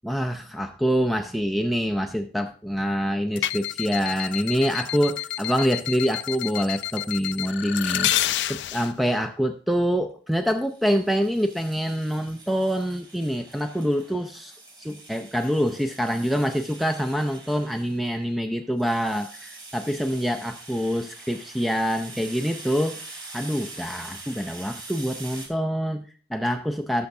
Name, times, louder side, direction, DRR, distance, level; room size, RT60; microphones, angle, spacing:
voice 1, 0.0-23.1 23.3-27.1, equal, ahead, 6 dB, 0.4 m, -26 dB
sound 1, 3.4-8.9, left 13 dB, 90° left, 0.4 m, -29 dB
sound 2, 10.6-25.5, right 3 dB, 25° right, 2.9 m, -44 dB
18.0 x 6.9 x 2.7 m, 0.40 s
head